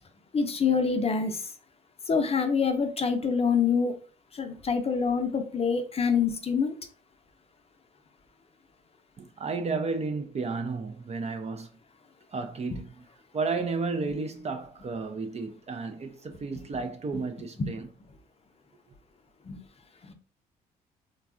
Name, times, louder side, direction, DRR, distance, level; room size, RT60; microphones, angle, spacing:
voice 1, 0.3-1.4 2.1-3.9 4.3-6.7 17.1-17.2 17.6-17.7 19.5-19.6 20.0-20.1, left 5 dB, 35° left, 0.6 m, -26 dB
voice 2, 9.2-11.7 12.3-13.0 13.3-17.9, right 4 dB, 35° right, 0.5 m, -32 dB
3.2 x 2.3 x 2.4 m
supercardioid pair, 60°, 18 cm